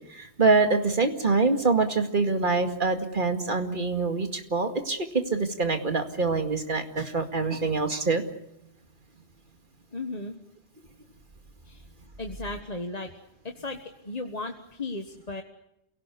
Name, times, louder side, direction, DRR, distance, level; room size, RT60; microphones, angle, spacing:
voice 1, 0.1-8.2, right 3 dB, 45° right, 6 dB, 2.3 m, -25 dB
voice 2, 9.9-10.4 11.6-11.8 12.2-13.1 13.4-13.8 14.0-15.4, left 2 dB, 35° left, 4 dB, 1.5 m, -35 dB
28.0 x 17.5 x 8.4 m, 0.84 s
omnidirectional pair, 1.1 m